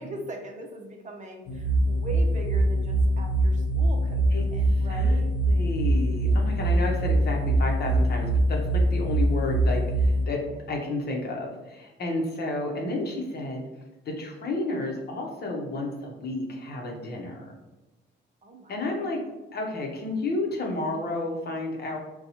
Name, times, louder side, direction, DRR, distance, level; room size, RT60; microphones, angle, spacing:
voice 1, 0.0-5.3 12.1-12.2 18.4-19.2, right 1 dB, 40° right, 3 dB, 0.6 m, -40 dB
sound 1, 1.5-10.3, right 1 dB, 85° left, 0.6 m, -23 dB
voice 2, 4.3-13.7 14.0-17.5 18.7-19.2 19.5-22.0, left 2 dB, 55° left, 0 dB, 0.9 m, -31 dB
4.0 x 2.3 x 2.8 m, 1.1 s
cardioid pair, 90°, 20 cm